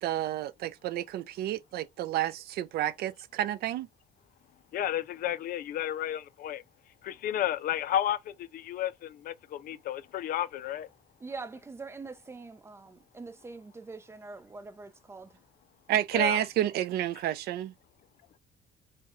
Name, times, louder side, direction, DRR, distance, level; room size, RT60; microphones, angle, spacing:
voice 1, 0.0-3.9 15.9-17.7, right 12 dB, 70° right, 0.5 m, -30 dB
voice 2, 4.7-6.6 7.0-10.9 16.1-16.4, left 11 dB, 60° left, 0.4 m, -32 dB
voice 3, 11.2-15.4, right 3 dB, 15° right, 0.5 m, -44 dB
4.6 x 2.2 x 3.0 m
cardioid pair, 110°, 17 cm